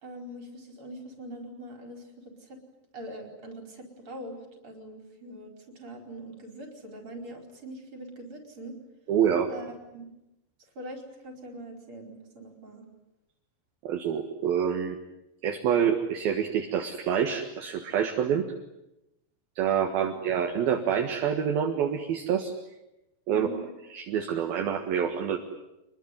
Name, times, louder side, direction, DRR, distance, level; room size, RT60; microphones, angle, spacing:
voice 1, 0.0-2.6 2.9-8.8 9.5-10.1 10.8-12.9 23.3-23.7, right 1 dB, 30° right, 4 dB, 5.3 m, -43 dB
voice 2, 9.1-9.5 13.8-15.0 15.4-18.5 19.6-22.5 23.3-23.5 23.9-25.4, right 8 dB, 65° right, 4 dB, 3.2 m, -27 dB
26.5 x 22.0 x 9.5 m, 0.90 s
omnidirectional pair, 5.0 m